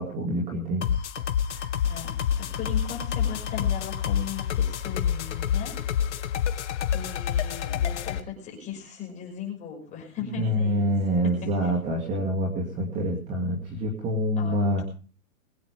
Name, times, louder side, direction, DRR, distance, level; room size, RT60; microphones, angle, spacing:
voice 1, 0.0-1.9 10.2-14.8, equal, 15° right, 0 dB, 2.5 m, -27 dB
sound 1, 0.8-8.2, left 9 dB, 55° left, 2.0 m, -28 dB
voice 2, 1.8-5.7 6.9-10.9 11.3-11.5 14.4-14.6, left 8 dB, 15° left, 0 dB, 6.0 m, -37 dB
22.0 x 8.8 x 5.1 m, 0.39 s
hypercardioid pair, 160°, 42 cm